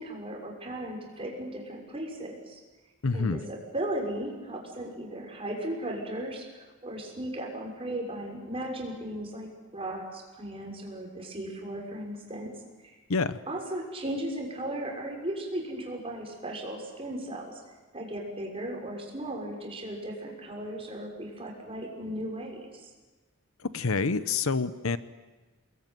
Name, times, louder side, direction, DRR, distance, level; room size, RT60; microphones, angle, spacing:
voice 1, 0.0-2.6 3.1-12.5 13.5-17.6 17.9-22.9, right 1 dB, 25° right, 0 dB, 6.3 m, -36 dB
voice 2, 3.0-3.4 13.1-13.4 23.7-25.0, left 4 dB, 70° left, 13 dB, 0.9 m, -27 dB
28.0 x 21.0 x 9.4 m, 1.2 s
head